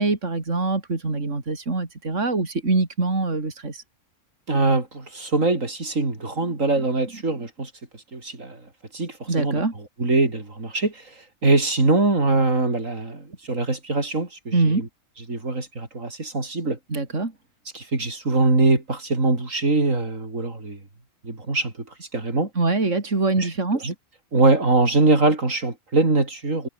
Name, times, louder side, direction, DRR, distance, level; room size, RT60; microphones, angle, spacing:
voice 1, 0.0-3.8 9.3-9.7 14.5-14.9 16.9-17.3 22.6-23.9, right 3 dB, 70° right, 3.8 m, -24 dB
voice 2, 4.5-7.7 8.1-8.6 8.9-9.6 10.0-11.1 11.4-14.8 15.3-16.8 17.7-20.8 21.2-21.7 22.0-22.5 23.4-23.5 23.8-23.9 24.3-26.7, right 2 dB, 85° right, 4.8 m, -22 dB
omnidirectional pair, 1.3 m